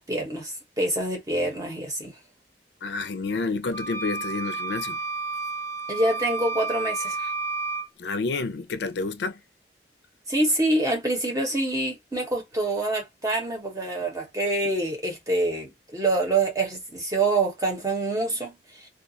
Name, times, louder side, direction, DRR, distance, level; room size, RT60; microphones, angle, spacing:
voice 1, 0.0-2.1 5.9-7.3 10.3-18.9, right 2 dB, 20° right, 0.8 m, -26 dB
voice 2, 2.8-5.0 8.0-9.4, left 3 dB, 75° left, 0.4 m, -29 dB
sound 1, 3.7-7.9, right 4 dB, 15° left, 0.4 m, -31 dB
2.4 x 2.3 x 2.6 m
head